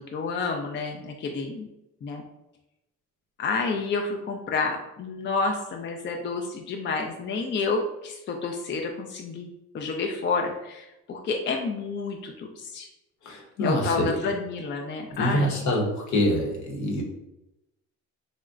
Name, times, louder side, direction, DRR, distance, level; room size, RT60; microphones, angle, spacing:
voice 1, 0.0-1.7 2.0-2.2 3.4-9.5 9.7-12.9 13.6-15.6, left 4 dB, 40° left, 2 dB, 0.4 m, -29 dB
voice 2, 13.2-14.1 15.2-17.0, equal, 70° left, 0 dB, 0.9 m, -25 dB
3.8 x 2.1 x 2.4 m, 0.90 s
cardioid pair, 90°, 30 cm